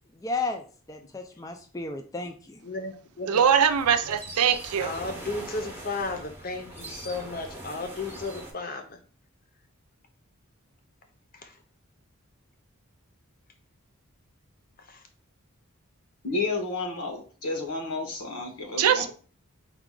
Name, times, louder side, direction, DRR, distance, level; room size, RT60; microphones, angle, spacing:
voice 1, 0.2-2.6, left 3 dB, 15° left, 0.3 m, -33 dB
voice 2, 2.6-3.5 4.8-9.0 11.3-11.6 14.9-15.0, left 3 dB, 40° left, 0.7 m, -34 dB
voice 3, 3.3-4.9 18.8-19.1, right 8 dB, 85° right, 0.5 m, -22 dB
sound 1, 3.4-8.5, right 1 dB, 10° right, 0.7 m, -42 dB
voice 4, 16.2-19.1, left 3 dB, 90° left, 1.2 m, -31 dB
4.7 x 2.4 x 3.7 m
head